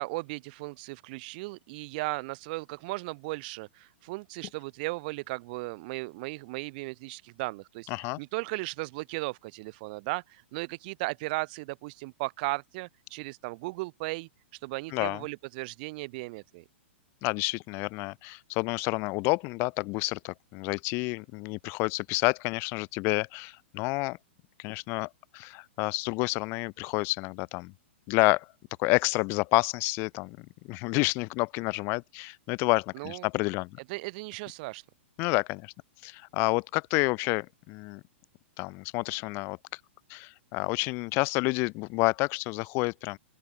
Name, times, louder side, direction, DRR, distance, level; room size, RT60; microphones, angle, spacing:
voice 1, 0.0-7.9 8.2-14.3 14.6-16.6 32.9-33.3 33.9-34.8, right 25 dB, 45° right, 0.8 m, -36 dB
voice 2, 7.9-8.2 14.9-15.2 17.2-24.2 24.6-27.7 28.1-28.5 28.8-33.8 35.2-35.7 36.0-38.0 38.6-39.6 40.1-43.2, left 27 dB, 35° left, 0.3 m, -29 dB
open air
hypercardioid pair, 125°, 7 cm